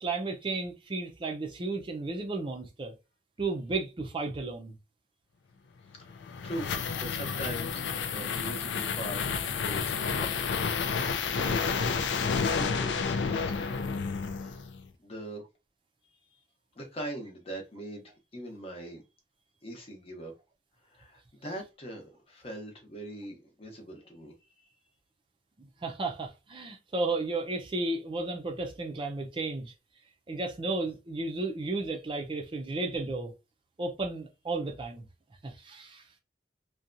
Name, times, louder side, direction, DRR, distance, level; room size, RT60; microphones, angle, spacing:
voice 1, 0.0-2.9 3.4-4.8 25.6-29.7 30.3-33.3 33.8-35.0 35.4-36.0, right 3 dB, 30° right, 0.4 m, -33 dB
voice 2, 5.9-6.7 7.0-10.5 11.3-13.9 14.3-14.6 15.0-15.4 16.8-19.0 19.6-20.3 20.8-24.7, right 1 dB, 35° left, 0.7 m, -42 dB
sound 1, 6.0-14.8, left 5 dB, 85° left, 0.4 m, -30 dB
2.7 x 2.2 x 2.5 m
head